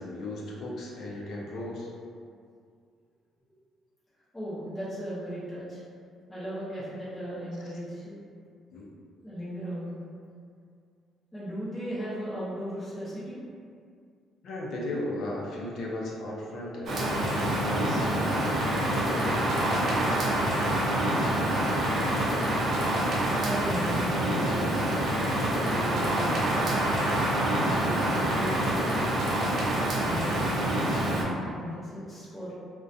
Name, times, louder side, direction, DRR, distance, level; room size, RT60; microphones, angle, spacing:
voice 1, 0.0-1.9 8.7-8.9 14.4-20.5, left 1 dB, 60° left, -4 dB, 0.5 m, -36 dB
voice 2, 4.3-5.8 6.3-8.2 9.2-10.0 11.3-13.4 21.1-21.3 23.4-26.8 27.6-29.3 30.0-32.5, equal, 10° left, -11 dB, 0.5 m, -37 dB
Rain, 16.9-31.2, right 1 dB, 55° right, 0.5 m, -26 dB
2.4 x 2.1 x 2.6 m, 2.2 s
cardioid pair, 140°, 0 cm